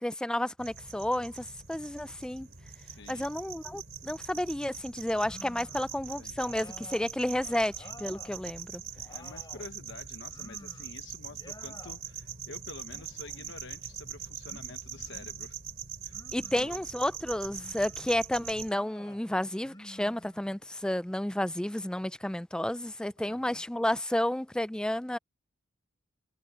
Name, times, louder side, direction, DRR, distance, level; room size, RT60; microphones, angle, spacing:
voice 1, 0.0-2.5 3.1-8.8 16.3-25.2, left 1 dB, 5° left, 0.3 m, -31 dB
sound 1, 0.6-18.7, right 8 dB, 50° right, 3.7 m, -43 dB
voice 2, 2.7-3.3 5.6-6.4 9.1-15.6 16.0-16.8 23.2-23.6, left 3 dB, 65° left, 1.1 m, -49 dB
sound 2, 5.1-5.9 6.4-8.4 8.8-9.7 10.3-11.0 11.3-12.0 12.8-13.6 14.4-15.4 16.1-16.8 17.5-18.1 18.6-19.2 19.6-20.7, left 1 dB, 20° left, 6.1 m, -52 dB
head